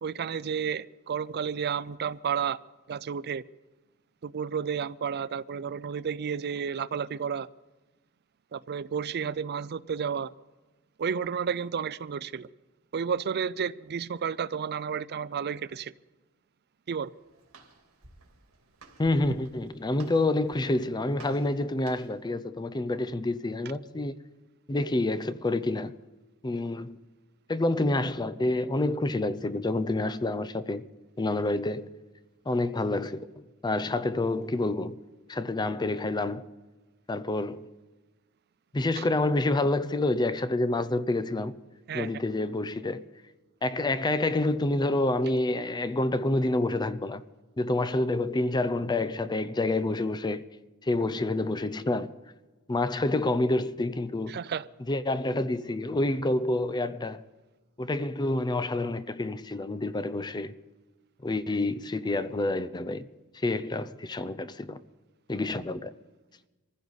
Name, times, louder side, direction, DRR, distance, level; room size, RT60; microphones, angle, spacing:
voice 1, 0.0-2.6 2.9-3.4 4.2-7.5 8.5-10.3 11.0-12.5 12.9-15.9 16.9-17.1 39.0-39.1 41.9-42.1 54.3-54.7, right 7 dB, 50° right, 0.4 m, -31 dB
Walk footsteps, 16.9-22.3, right 3 dB, 65° right, 3.0 m, -54 dB
voice 2, 19.0-24.1 24.7-25.9 26.4-27.0 27.5-30.9 31.2-31.9 32.5-35.0 35.3-36.5 37.1-37.7 38.7-41.6 41.9-43.0 43.6-47.2 47.6-50.5 50.8-52.1 52.7-54.4 54.9-57.2 57.8-60.5 61.2-63.1 63.3-64.8 65.3-65.9, left 2 dB, 20° left, 0.5 m, -28 dB
23.5 x 15.5 x 4.1 m
head